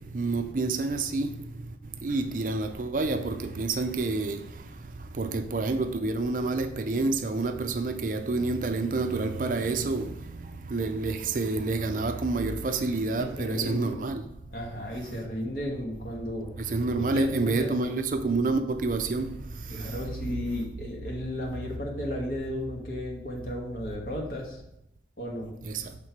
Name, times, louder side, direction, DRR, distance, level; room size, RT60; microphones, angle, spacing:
voice 1, 0.1-1.3 2.0-4.4 5.2-10.1 10.7-14.2 16.7-19.3 25.7-25.8, right 3 dB, 50° right, 0.5 m, -28 dB
voice 2, 13.2-13.9 14.5-16.5 17.0-18.0 19.7-24.6 25.2-25.5, left 1 dB, 55° left, 1.3 m, -34 dB
6.4 x 3.7 x 4.5 m
head